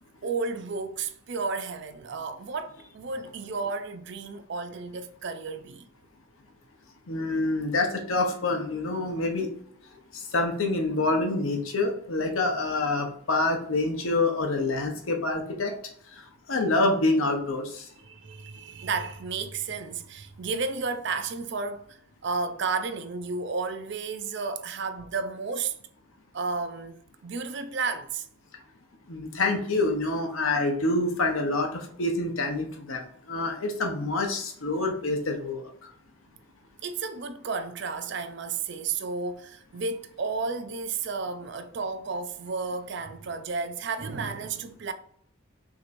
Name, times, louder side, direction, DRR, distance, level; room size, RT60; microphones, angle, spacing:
voice 1, 0.2-5.9 18.0-25.8 26.3-28.3 36.8-44.9, right 4 dB, 55° right, 0.4 m, -32 dB
voice 2, 7.1-9.5 10.1-15.7 16.1-16.2 16.5-17.9 29.1-35.7, left 2 dB, 75° left, 1.0 m, -27 dB
6.1 x 3.0 x 2.6 m
head